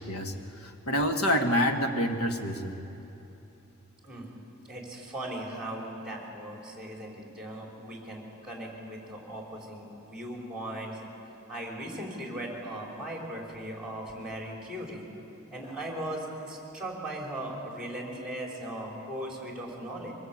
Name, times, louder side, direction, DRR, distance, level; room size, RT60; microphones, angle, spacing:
voice 1, 0.1-2.8, equal, 70° left, 4 dB, 1.8 m, -27 dB
voice 2, 4.0-11.1 11.5-15.1 15.5-20.1, right 1 dB, 5° right, -2 dB, 5.2 m, -38 dB
24.5 x 19.5 x 8.8 m, 3.0 s
head